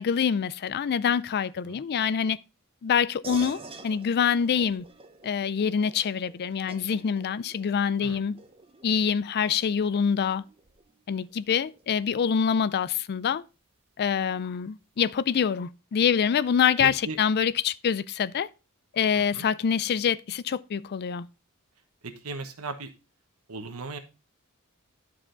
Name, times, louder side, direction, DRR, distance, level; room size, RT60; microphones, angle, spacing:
voice 1, 0.0-2.4 2.8-4.8 5.2-8.4 8.8-10.4 11.1-13.4 14.0-18.5 18.9-21.3, left 7 dB, 50° left, 0.4 m, -25 dB
sound 1, 3.2-13.1, right 3 dB, 25° right, 0.9 m, -49 dB
voice 2, 16.8-17.2 19.1-19.5 22.0-22.9 23.5-24.0, right 3 dB, 85° right, 1.1 m, -37 dB
11.0 x 4.9 x 3.8 m
head